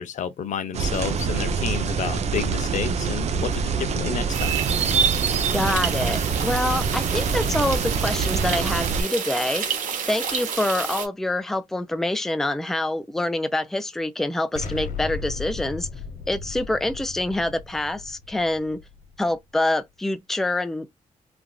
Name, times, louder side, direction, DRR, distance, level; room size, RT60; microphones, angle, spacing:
voice 1, 0.0-4.6, left 8 dB, 70° left, 0.6 m, -30 dB
sound 1, 0.7-9.0, right 6 dB, 55° right, 0.5 m, -25 dB
sound 2, 4.3-11.1, right 7 dB, 85° right, 1.0 m, -30 dB
voice 2, 5.5-9.7 10.1-15.9 16.3-18.8 19.2-20.9, left 1 dB, 5° left, 0.4 m, -26 dB
Explosion, 14.5-19.4, left 4 dB, 90° left, 1.2 m, -36 dB
3.3 x 2.4 x 2.2 m
wide cardioid pair, 130°, 13 cm